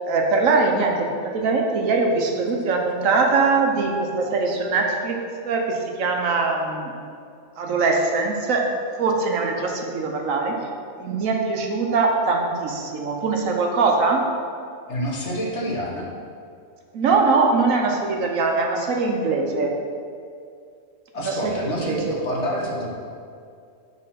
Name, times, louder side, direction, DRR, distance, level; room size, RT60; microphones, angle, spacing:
voice 1, 0.1-6.9 7.6-8.7 9.0-10.5 11.0-14.3 16.9-19.7 21.2-22.0, right 4 dB, 85° right, 2 dB, 1.3 m, -22 dB
voice 2, 14.9-16.1 21.1-22.9, equal, 60° left, -2 dB, 1.4 m, -27 dB
6.6 x 4.1 x 5.7 m, 2.4 s
omnidirectional pair, 1.4 m